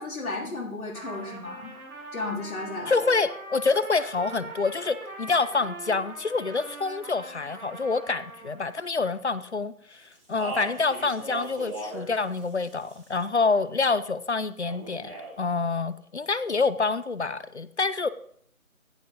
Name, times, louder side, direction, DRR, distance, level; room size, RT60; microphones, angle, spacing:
voice 1, 0.0-1.7 2.1-3.0, left 2 dB, 80° left, -3 dB, 3.3 m, -34 dB
Trumpet, 0.9-8.8, right 2 dB, 90° right, 4.2 m, -42 dB
voice 2, 2.9-18.1, left 4 dB, 50° left, 15 dB, 0.8 m, -27 dB
Speech, 10.1-12.1 12.3-13.2 14.7-15.3, right 2 dB, 20° right, 4.8 m, -37 dB
15.5 x 8.4 x 3.9 m, 0.66 s
figure-of-eight pair, 170°, 42 cm